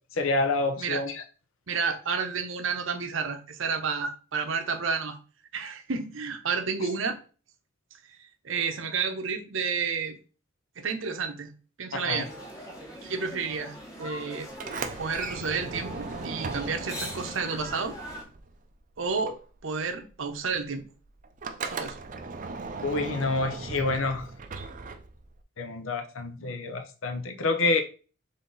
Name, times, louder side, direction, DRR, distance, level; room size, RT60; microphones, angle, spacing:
voice 1, 0.1-1.2 11.9-12.2 22.8-24.3 25.6-27.8, left 3 dB, 75° left, 8 dB, 0.8 m, -28 dB
voice 2, 1.7-5.2 5.5-7.2 8.1-8.2 8.4-10.2 10.8-11.5 11.8-12.3 13.0-14.5 15.0-17.9 19.0-20.8 21.6-22.0, right 5 dB, 70° right, 6 dB, 0.7 m, -31 dB
sound 1, 12.2-18.2, equal, 15° left, 1.1 m, -41 dB
Sliding door, 14.5-18.8 19.0-25.4, right 4 dB, 40° right, 0.4 m, -38 dB
3.9 x 3.4 x 3.9 m, 0.36 s
head